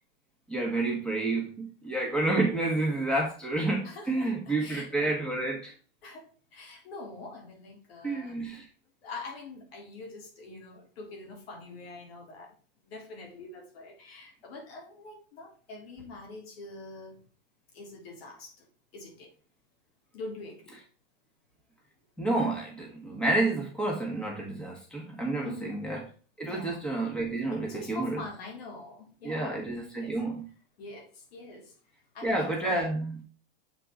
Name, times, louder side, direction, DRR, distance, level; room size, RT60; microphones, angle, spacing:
voice 1, 0.5-5.7 8.0-8.7 22.2-26.0 26.4-28.2 29.2-30.4 32.2-33.2, right 2 dB, 5° left, -2 dB, 1.7 m, -29 dB
voice 2, 3.8-4.9 6.0-6.2 6.5-8.3 9.0-12.5 12.9-17.2 17.7-18.5 18.9-19.3 20.1-20.8 25.4-25.8 26.5-26.8 27.5-29.6 29.9-30.1 30.8-31.6 32.1-32.9, left 3 dB, 90° left, 0 dB, 3.4 m, -44 dB
7.1 x 4.5 x 3.9 m, 0.39 s
supercardioid pair, 145°, 29 cm